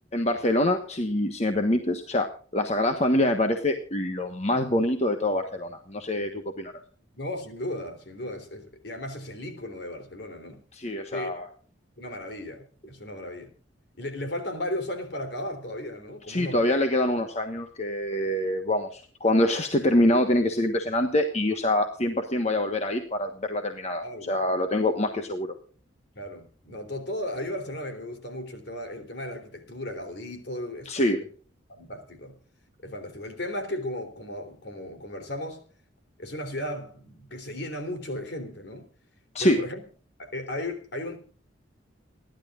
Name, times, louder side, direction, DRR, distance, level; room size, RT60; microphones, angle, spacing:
voice 1, 0.1-6.7 10.7-11.5 16.3-25.5 30.8-31.2 39.3-39.6, left 1 dB, 35° left, 1.3 m, -25 dB
voice 2, 7.1-10.6 11.1-11.3 12.0-13.5 14.0-16.7 24.0-24.4 26.2-31.1 31.7-32.4 32.8-35.7 36.2-38.9 39.4-39.8 40.2-41.2, left 1 dB, 60° left, 3.5 m, -35 dB
28.5 x 11.5 x 2.5 m
head